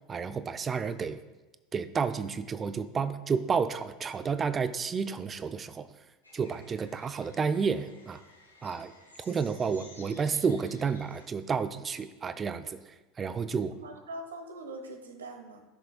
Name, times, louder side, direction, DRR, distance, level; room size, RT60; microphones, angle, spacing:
voice 1, 0.1-1.2 1.7-5.9 6.3-8.2 8.6-8.9 9.2-12.8 13.2-13.7, right 5 dB, 25° right, 12 dB, 0.5 m, -31 dB
sound 1, 6.2-11.3, left 2 dB, 90° left, 1.1 m, -55 dB
voice 2, 13.5-15.6, right 2 dB, 75° right, 5 dB, 1.0 m, -43 dB
14.0 x 6.5 x 2.3 m, 1.2 s
figure-of-eight pair, 80°, 0 cm